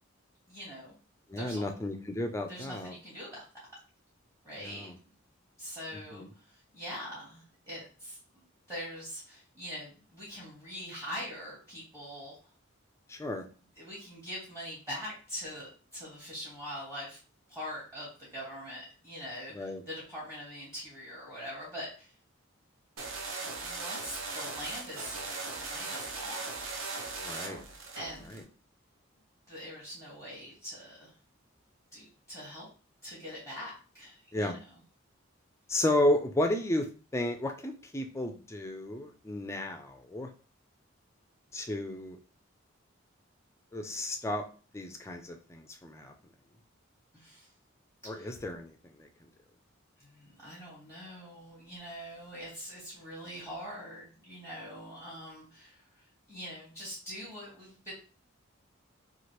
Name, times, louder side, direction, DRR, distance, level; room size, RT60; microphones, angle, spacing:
voice 1, 0.5-0.9 1.4-1.7 2.5-3.4 4.4-4.9 5.6-6.2 6.7-8.2 8.7-12.4 13.8-17.2 17.5-22.1 23.4-26.4 28.0-28.4 29.5-31.1 31.9-32.7 33.0-34.5 47.1-47.4 48.0-48.3 50.1-55.7 56.3-57.9, equal, 15° right, -8 dB, 1.1 m, -43 dB
voice 2, 1.3-3.0 4.6-5.0 5.9-6.3 13.1-13.4 19.5-19.8 27.2-27.6 28.2-28.4 34.3-34.6 35.7-40.3 41.5-42.2 43.7-44.5 44.7-46.1 48.0-49.1, left 1 dB, 15° left, 5 dB, 0.3 m, -33 dB
sound 1, 23.0-28.4, right 3 dB, 75° right, 0.6 m, -39 dB
2.9 x 2.5 x 3.0 m, 0.37 s
head